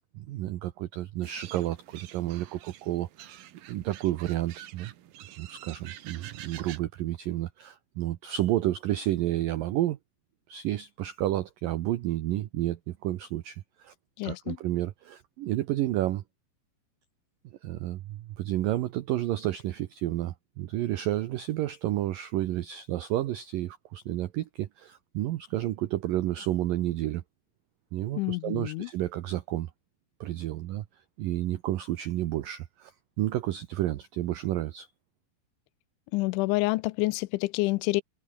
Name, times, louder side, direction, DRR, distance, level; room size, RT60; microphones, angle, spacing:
voice 1, 0.0-3.4 3.7-4.9 5.4-10.0 10.5-13.9 14.2-16.2 17.6-27.2 27.9-29.7 30.2-30.9 31.2-32.9 33.2-34.9, right 14 dB, 80° right, 2.0 m, -31 dB
sound 1, 1.2-6.8, right 12 dB, 65° right, 2.8 m, -47 dB
voice 2, 14.2-14.6 28.2-28.9 36.1-38.0, left 22 dB, 90° left, 3.0 m, -28 dB
omnidirectional pair, 5.4 m